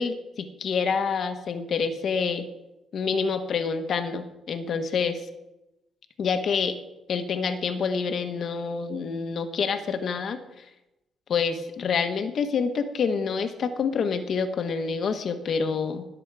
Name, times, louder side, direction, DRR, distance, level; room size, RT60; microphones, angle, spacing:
voice 1, 0.0-2.5 2.9-5.3 6.2-6.8 7.1-10.6 11.3-16.1, left 5 dB, 60° left, 8 dB, 1.4 m, -27 dB
20.5 x 7.6 x 4.9 m, 0.97 s
cardioid pair, 90°, 0 cm